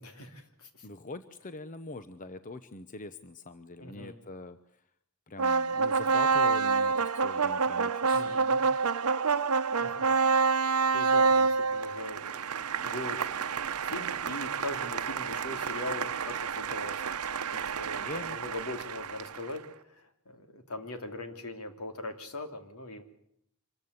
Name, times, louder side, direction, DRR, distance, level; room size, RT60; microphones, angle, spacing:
voice 1, 0.0-0.9 3.8-4.1 8.1-8.6 9.8-10.1 10.9-17.2 17.5-23.0, left 1 dB, 75° left, 6 dB, 2.9 m, -41 dB
voice 2, 0.8-4.6 5.3-8.4 18.0-18.4, left 2 dB, 35° left, 11 dB, 0.8 m, -43 dB
sound 1, 5.4-19.6, right 5 dB, 80° right, 0.8 m, -28 dB
25.0 x 14.5 x 9.7 m, 0.72 s
head